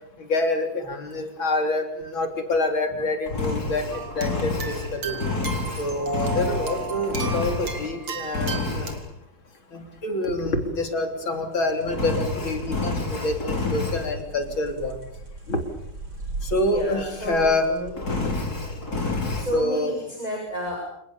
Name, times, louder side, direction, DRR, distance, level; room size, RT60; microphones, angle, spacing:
voice 1, 0.3-5.2 5.8-8.9 9.7-15.0 15.5-15.6 16.4-17.7 18.2-18.3 19.5-20.0, left 2 dB, 65° left, 5 dB, 4.3 m, -26 dB
Engine, 3.3-8.0 8.3-9.1 11.9-14.1 17.9-19.5, left 3 dB, 45° left, 4.6 m, -29 dB
sound 1, 3.9-8.9, right 5 dB, 85° right, 4.0 m, -35 dB
sound 2, 11.5-18.0, right 3 dB, 65° right, 5.0 m, -40 dB
voice 2, 16.7-17.9 19.3-20.8, equal, 20° right, -1 dB, 7.9 m, -31 dB
29.5 x 27.0 x 7.1 m, 0.76 s
omnidirectional pair, 2.3 m